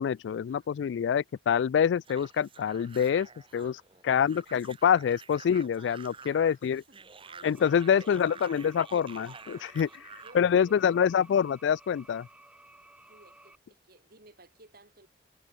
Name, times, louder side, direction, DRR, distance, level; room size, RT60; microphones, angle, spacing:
voice 1, 0.0-3.7 4.1-6.8 7.4-9.9 10.3-12.3, left 8 dB, 85° left, 0.3 m, -26 dB
sound 1, 2.1-10.4, right 5 dB, 30° right, 3.6 m, -50 dB
voice 2, 2.8-3.2 3.5-3.8 5.9-7.0 7.2-8.7 9.5-10.9 13.1-15.1, right 3 dB, 55° right, 6.9 m, -56 dB
sound 2, 7.5-13.6, right 1 dB, 5° right, 1.6 m, -55 dB
head